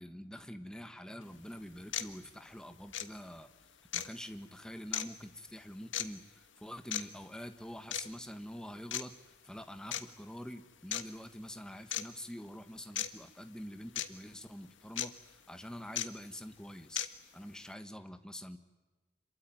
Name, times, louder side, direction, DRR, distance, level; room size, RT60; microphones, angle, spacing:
voice 1, 0.0-3.5 3.9-9.1 9.4-17.1 17.3-18.6, equal, 5° left, 8 dB, 1.5 m, -46 dB
sound 1, 1.2-1.3 1.9-2.1 2.9-3.1 3.9-4.1 4.9-5.1 5.9-6.1 6.9-7.0 7.9-8.1 8.9-9.0 9.9-10.0 10.9-11.0 11.9-12.0 13.0-13.1 14.0-14.1 15.0-15.1 16.0-16.1 17.0-17.1, left 11 dB, 85° left, 1.6 m, -34 dB
27.0 x 23.5 x 9.3 m, 1.2 s
head